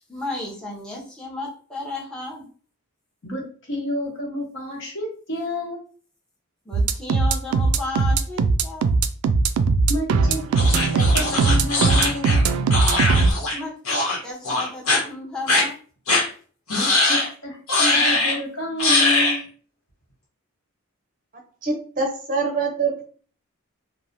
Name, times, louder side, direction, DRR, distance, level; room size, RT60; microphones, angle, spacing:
voice 1, 0.1-2.5 6.7-8.9 13.5-15.7, left 2 dB, 5° left, -5 dB, 0.7 m, -33 dB
voice 2, 3.2-5.8 9.9-12.4 16.7-19.4, left 1 dB, 60° left, -3 dB, 1.1 m, -30 dB
sound 1, 6.7-13.3, right 4 dB, 85° right, 0.3 m, -19 dB
sound 2, 10.6-13.6 13.8-14.2 14.4-15.0 15.5-15.6 16.1-16.2 16.7-17.3 17.7-18.4 18.8-19.4, left 2 dB, 80° left, 1.0 m, -21 dB
voice 3, 21.6-23.0, right 4 dB, 40° right, 3 dB, 0.5 m, -24 dB
3.0 x 2.1 x 2.5 m, 0.41 s
head